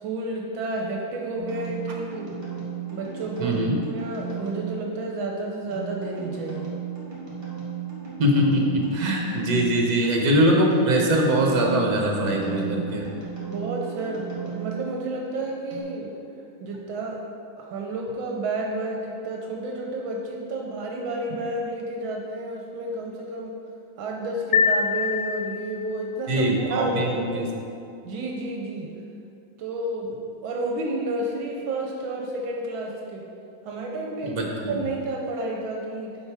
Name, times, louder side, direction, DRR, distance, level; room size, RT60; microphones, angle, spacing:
voice 1, 0.0-2.5 2.9-6.7 13.4-16.2 16.6-17.2 17.6-23.5 24.0-27.5 28.0-28.9 29.6-33.3 33.6-36.2, right 2 dB, 80° right, 0 dB, 1.6 m, -31 dB
sound 1, 1.4-15.8, right 8 dB, 30° right, 2.5 m, -36 dB
voice 2, 3.4-3.8 8.2-13.1 26.3-27.5 34.2-34.8, right 1 dB, 55° right, 0 dB, 1.7 m, -22 dB
sound 2, 24.5-26.0, left 5 dB, 75° left, 1.1 m, -24 dB
9.0 x 6.0 x 4.8 m, 2.6 s
omnidirectional pair, 2.2 m